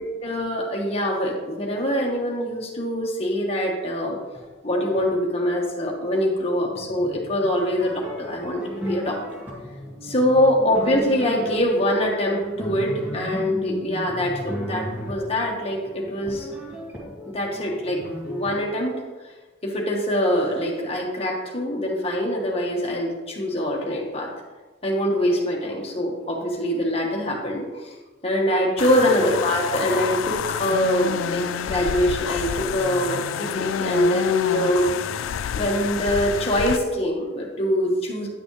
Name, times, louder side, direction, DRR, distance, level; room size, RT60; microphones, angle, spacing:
voice 1, 0.0-4.2 4.6-9.2 10.0-16.5 17.3-18.0 18.2-18.9 19.6-24.3 24.8-27.9 28.2-34.9 35.5-38.3, equal, 30° left, -2 dB, 1.4 m, -24 dB
sound 1, 6.7-18.6, equal, 10° right, 2.0 m, -35 dB
sound 2, 28.8-36.8, left 8 dB, 80° left, 0.3 m, -28 dB
9.9 x 6.1 x 3.2 m, 1.3 s
head